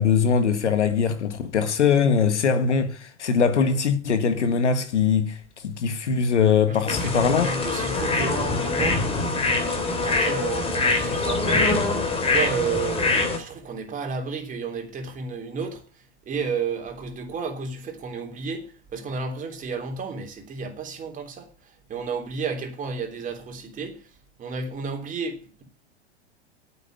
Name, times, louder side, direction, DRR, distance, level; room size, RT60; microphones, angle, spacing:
voice 1, 0.0-7.5, left 6 dB, 90° left, 1.9 m, -22 dB
voice 2, 6.7-9.1 9.9-11.8 12.2-24.1 24.4-25.6, right 5 dB, 25° right, 3.3 m, -32 dB
sound 1, 6.9-13.4, left 3 dB, 15° left, 3.1 m, -24 dB
9.4 x 8.2 x 9.1 m
hypercardioid pair, 120°, 34 cm